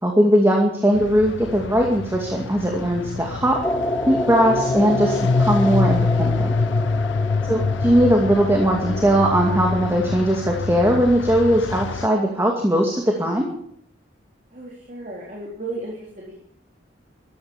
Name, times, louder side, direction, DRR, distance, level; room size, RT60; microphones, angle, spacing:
voice 1, 0.0-3.6 4.1-6.5 7.4-13.5, equal, 15° right, 0 dB, 2.2 m, -19 dB
sound 1, 0.9-12.1, left 4 dB, 80° left, 0.5 m, -25 dB
sound 2, 3.6-9.6, left 1 dB, 10° left, 0.8 m, -28 dB
voice 2, 7.2-7.7 14.5-16.4, right 2 dB, 40° right, -3 dB, 3.8 m, -35 dB
14.5 x 13.5 x 7.2 m, 0.66 s
head